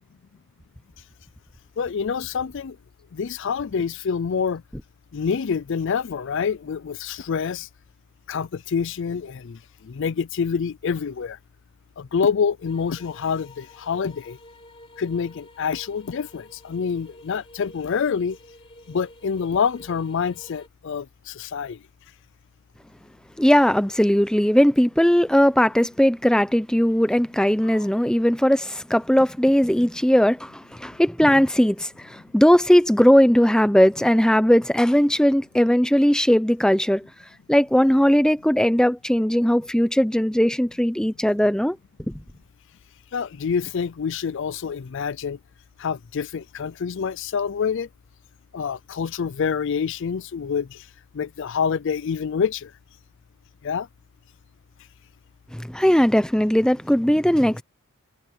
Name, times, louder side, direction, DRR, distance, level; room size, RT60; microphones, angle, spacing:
voice 1, 1.8-2.8 3.1-4.6 5.1-7.7 8.3-9.6 9.8-11.4 12.0-14.4 15.0-18.4 18.9-21.8 27.6-27.9 43.1-45.4 45.8-47.9 48.5-50.8 51.1-52.7 53.6-53.9, left 6 dB, 55° left, 0.4 m, -26 dB
sound 1, 12.7-20.7, left 1 dB, 25° left, 3.2 m, -49 dB
voice 2, 23.4-37.0 37.5-41.8 42.1-42.2 55.5-57.6, equal, 5° left, 0.7 m, -19 dB
head